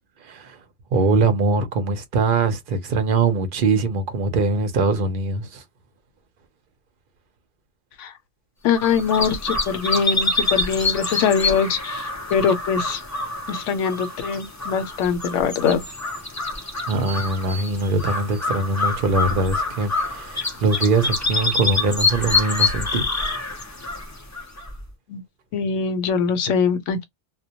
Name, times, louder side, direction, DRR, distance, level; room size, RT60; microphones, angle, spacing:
voice 1, 0.2-0.6 0.9-5.6 16.9-23.1, right 3 dB, 55° right, 0.7 m, -22 dB
voice 2, 8.6-13.0 13.5-15.8 25.1-25.2 25.5-27.0, left 6 dB, 85° left, 0.9 m, -22 dB
sound 1, 8.7-24.8, left 3 dB, 30° left, 0.3 m, -26 dB
2.1 x 2.1 x 2.7 m
omnidirectional pair, 1.2 m